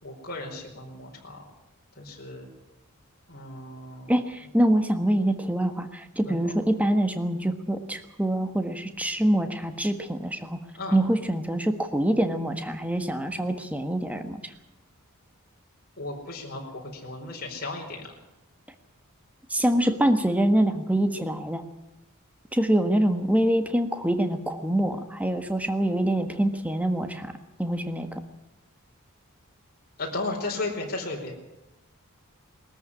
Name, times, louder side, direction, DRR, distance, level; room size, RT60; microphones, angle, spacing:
voice 1, 0.0-1.4 1.9-2.5 3.3-4.1 6.2-6.5 10.7-11.0 16.0-18.1 30.0-31.3, left 2 dB, 45° left, -1 dB, 4.8 m, -35 dB
voice 2, 4.1-10.6 10.9-14.5 19.5-21.6 22.5-27.3 27.6-28.2, right 1 dB, 5° right, 7 dB, 1.5 m, -25 dB
21.0 x 14.0 x 9.9 m, 0.92 s
head